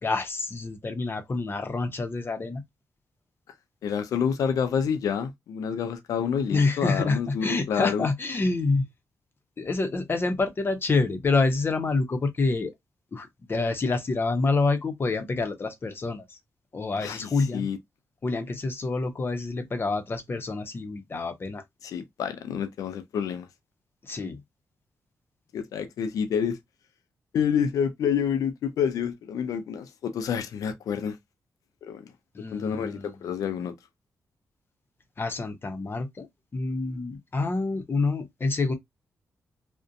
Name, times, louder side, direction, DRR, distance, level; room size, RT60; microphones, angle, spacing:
voice 1, 0.0-2.6 6.5-8.8 9.6-12.7 13.1-16.4 16.7-17.7 18.2-21.6 24.0-24.4 32.3-33.1 35.2-36.3 36.5-38.7, left 3 dB, 40° left, 0.6 m, -27 dB
voice 2, 3.8-8.1 17.0-17.8 21.8-23.5 25.5-26.6 27.3-31.2 31.8-32.0 32.5-33.7, left 7 dB, 80° left, 0.4 m, -28 dB
2.5 x 2.1 x 2.5 m
cardioid pair, 65°, 6 cm